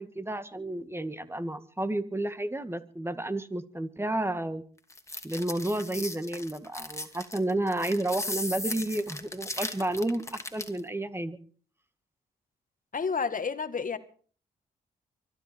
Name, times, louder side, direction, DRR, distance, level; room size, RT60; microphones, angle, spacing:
voice 1, 0.0-4.6 5.2-11.4, right 1 dB, 15° right, 10 dB, 2.0 m, -31 dB
sound 1, 4.9-10.8, left 2 dB, 15° left, 2.8 m, -37 dB
voice 2, 12.9-14.0, left 5 dB, 45° left, 11 dB, 1.9 m, -30 dB
24.5 x 11.0 x 4.6 m, 0.43 s
supercardioid pair, 45°, 19 cm